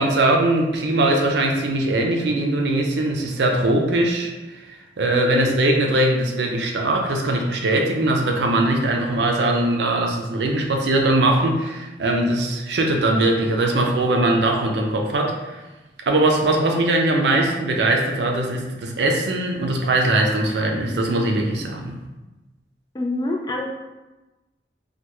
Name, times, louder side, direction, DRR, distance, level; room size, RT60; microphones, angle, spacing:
voice 1, 0.0-15.6 16.1-22.0, right 1 dB, 75° right, 2 dB, 0.5 m, -21 dB
voice 2, 5.1-5.5 22.9-23.7, left 2 dB, 20° left, 0 dB, 0.3 m, -27 dB
3.2 x 2.2 x 3.0 m, 1.1 s
head